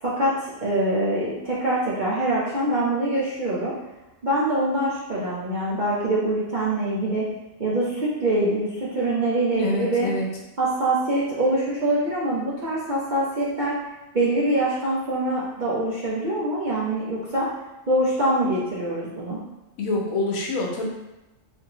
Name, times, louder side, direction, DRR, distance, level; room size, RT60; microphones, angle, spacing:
voice 1, 0.0-3.7 4.2-7.3 7.6-10.1 10.6-13.8 14.1-17.5 17.9-19.4, right 1 dB, 50° right, -7 dB, 0.6 m, -24 dB
voice 2, 9.6-10.3 19.8-20.9, left 2 dB, 85° left, -1 dB, 1.1 m, -26 dB
3.4 x 2.6 x 2.8 m, 0.98 s
omnidirectional pair, 1.4 m